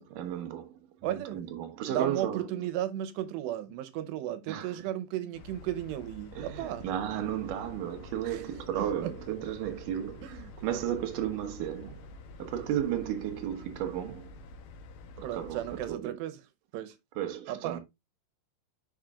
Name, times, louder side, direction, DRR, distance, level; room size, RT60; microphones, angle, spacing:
voice 1, 0.0-2.4 4.5-4.7 6.4-12.0 12.4-14.3 15.2-15.6 15.9-16.1 17.2-17.8, right 10 dB, 70° right, 2.2 m, -34 dB
voice 2, 1.0-1.4 1.9-6.8 8.3-8.4 8.7-9.2 10.2-10.5 15.2-16.4 16.7-16.9 17.5-17.8, right 12 dB, 85° right, 3.0 m, -35 dB
sound 1, 5.3-15.9, left 3 dB, 80° left, 1.9 m, -48 dB
6.4 x 5.0 x 3.5 m
omnidirectional pair, 4.8 m